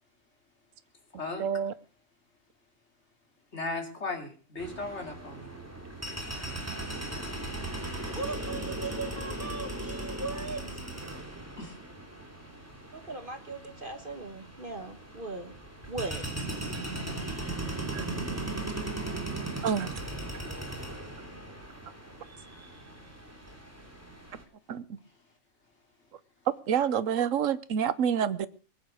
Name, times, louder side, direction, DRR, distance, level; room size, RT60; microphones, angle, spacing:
voice 1, 1.4-1.7 17.9-18.1 19.6-19.9 24.7-24.8 26.7-28.5, right 8 dB, 65° right, 16 dB, 1.2 m, -27 dB
voice 2, 3.5-5.6 11.6-11.8, left 3 dB, 50° left, 3 dB, 3.4 m, -36 dB
sound 1, 4.6-24.4, right 2 dB, 10° right, 3.1 m, -38 dB
voice 3, 8.1-11.2 12.9-15.5 15.9-16.3, right 3 dB, 40° right, 7 dB, 1.6 m, -39 dB
20.0 x 9.0 x 6.5 m, 0.41 s
omnidirectional pair, 1.5 m